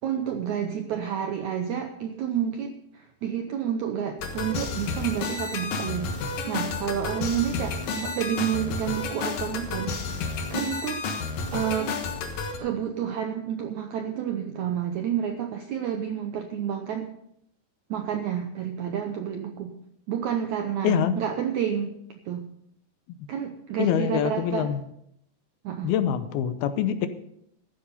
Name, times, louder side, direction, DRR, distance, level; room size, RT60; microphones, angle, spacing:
voice 1, 0.0-6.1 6.5-11.1 11.5-11.9 12.6-17.1 17.9-19.7 20.1-21.9 22.2-22.4 23.3-24.7 25.6-25.9, right 9 dB, 80° right, 5 dB, 1.7 m, -29 dB
sound 1, 4.2-12.6, left 4 dB, 65° left, 3.0 m, -31 dB
voice 2, 20.8-21.1 23.8-24.8 25.8-27.1, left 10 dB, 90° left, 11 dB, 2.7 m, -25 dB
13.0 x 9.8 x 5.5 m, 0.75 s
omnidirectional pair, 4.5 m